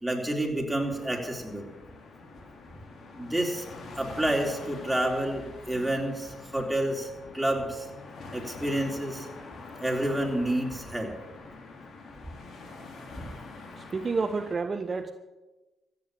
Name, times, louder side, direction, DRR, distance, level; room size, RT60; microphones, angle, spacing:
voice 1, 0.0-1.7 3.2-3.6 4.0-7.9 8.3-9.3 9.8-11.1, right 1 dB, 5° right, 0 dB, 3.9 m, -29 dB
sound 1, 0.7-14.6, left 3 dB, 65° left, 3.0 m, -45 dB
voice 2, 13.8-15.1, right 4 dB, 45° right, 8 dB, 0.9 m, -30 dB
14.5 x 8.6 x 8.6 m, 1.1 s
supercardioid pair, 55°, 0 cm